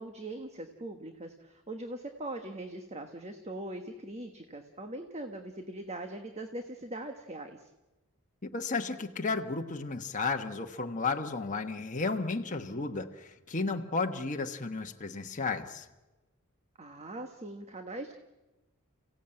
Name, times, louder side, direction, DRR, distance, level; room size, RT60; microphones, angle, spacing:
voice 1, 0.0-7.7 16.8-18.1, right 1 dB, 30° right, 6 dB, 1.3 m, -41 dB
voice 2, 8.4-15.9, left 3 dB, 35° left, 3 dB, 1.2 m, -33 dB
30.0 x 16.5 x 8.8 m, 1.1 s
head